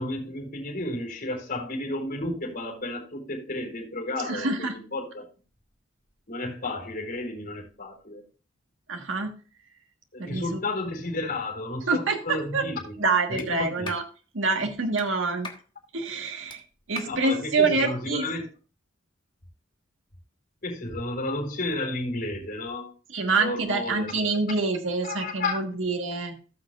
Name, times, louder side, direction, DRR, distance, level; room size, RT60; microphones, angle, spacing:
voice 1, 0.0-5.3 6.3-8.2 10.1-13.0 13.3-13.9 17.1-18.5 20.6-22.9 23.3-24.3 25.0-25.6, left 2 dB, 50° left, -1 dB, 4.1 m, -32 dB
voice 2, 4.2-4.7 8.9-9.3 10.3-10.6 11.9-12.7 13.0-14.0 14.3-15.5 15.9-16.6 16.9-18.3 23.1-26.4, right 3 dB, 85° right, 4 dB, 1.5 m, -26 dB
Clapping, 13.4-13.5 13.8-14.1 15.0-15.1 15.4-15.7 16.5-16.6 17.0-17.2, left 3 dB, 25° left, 1.3 m, -39 dB
17.5 x 6.1 x 2.4 m, 0.36 s
head